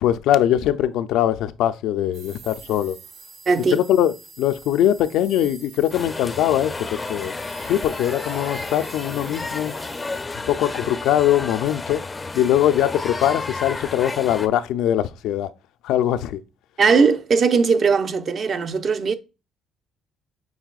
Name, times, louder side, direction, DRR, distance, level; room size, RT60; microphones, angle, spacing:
voice 1, 0.0-3.0 3.7-7.3 7.7-9.7 10.5-12.0 12.3-15.5 15.8-16.4, left 11 dB, 85° left, 0.4 m, -21 dB
sound 1, 2.1-10.2, right 5 dB, 65° right, 1.2 m, -46 dB
voice 2, 3.5-3.8 16.8-19.1, right 5 dB, 45° right, 0.5 m, -19 dB
sound 2, 5.9-14.5, left 3 dB, 20° left, 0.4 m, -32 dB
6.3 x 3.3 x 2.4 m
cardioid pair, 110°, 0 cm